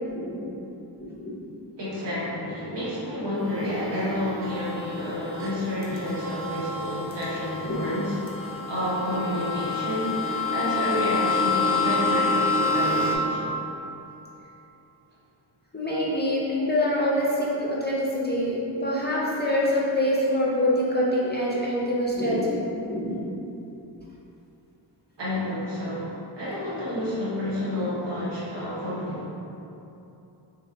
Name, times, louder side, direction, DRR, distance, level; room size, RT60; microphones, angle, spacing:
voice 1, 0.1-0.5 1.0-1.4 7.7-7.8 15.7-22.6 22.9-23.2, left 1 dB, 25° left, -6 dB, 0.6 m, -25 dB
voice 2, 1.8-8.2 8.7-13.6 25.2-29.3, left 1 dB, 70° right, -8 dB, 1.1 m, -30 dB
sound 1, 3.4-13.2, left 3 dB, 30° right, 0.5 m, -28 dB
3.3 x 3.2 x 2.6 m, 2.9 s
wide cardioid pair, 70°, 44 cm